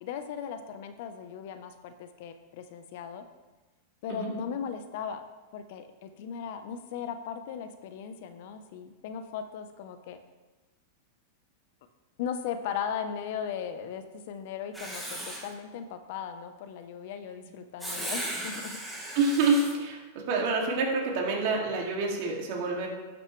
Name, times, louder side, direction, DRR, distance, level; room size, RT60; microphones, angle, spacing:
voice 1, 0.0-3.2 4.0-5.2 5.5-10.2 12.2-18.8, left 7 dB, 60° left, 9 dB, 0.9 m, -37 dB
Writing, 14.7-15.5 17.8-19.7, right 1 dB, ahead, 2.0 m, -36 dB
voice 2, 19.1-20.0 20.3-22.9, right 3 dB, 60° right, -1 dB, 2.3 m, -27 dB
11.5 x 6.6 x 3.3 m, 1.2 s
hypercardioid pair, 120°, 0 cm